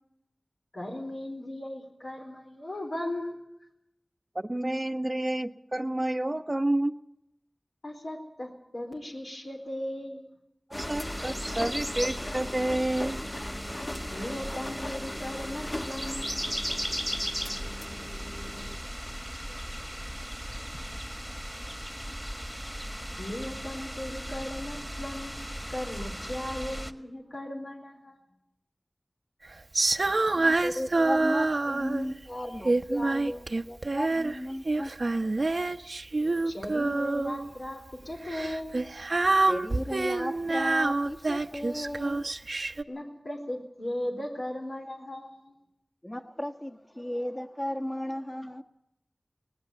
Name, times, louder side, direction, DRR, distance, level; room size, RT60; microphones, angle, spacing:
voice 1, 0.7-3.4 7.8-10.3 14.1-16.5 23.2-25.3 25.7-28.2 36.5-38.8 42.9-45.5, left 1 dB, 85° left, 1 dB, 4.0 m, -37 dB
voice 2, 4.3-6.9 10.9-13.2, right 1 dB, 35° right, 9 dB, 0.9 m, -29 dB
sound 1, 10.7-18.8, left 1 dB, 45° left, 1.5 m, -39 dB
sound 2, 10.7-26.9, equal, ahead, 1.6 m, -37 dB
Female singing, 29.7-32.1 32.6-34.4 34.7-37.5 38.3-42.8, right 2 dB, 75° right, 0.8 m, -27 dB
voice 3, 30.3-34.9 39.4-42.7 46.0-48.6, left 1 dB, 25° left, 6 dB, 1.5 m, -35 dB
19.5 x 17.0 x 9.2 m, 0.84 s
wide cardioid pair, 50°, 0 cm